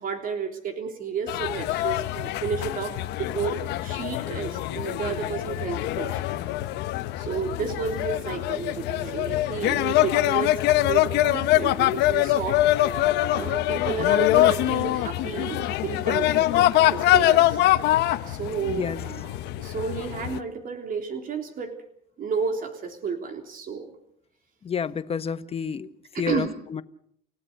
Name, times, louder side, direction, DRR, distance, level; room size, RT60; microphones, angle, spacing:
voice 1, 0.0-6.4 7.2-12.6 13.3-17.6 18.3-21.7 22.2-23.9 26.1-26.5, right 6 dB, 55° right, 3.4 m, -32 dB
sound 1, 1.3-20.4, left 15 dB, 85° left, 1.0 m, -24 dB
voice 2, 18.7-19.0 24.6-25.9 26.2-26.8, left 6 dB, 35° left, 1.3 m, -29 dB
29.5 x 16.5 x 6.7 m
cardioid pair, 110°, 17 cm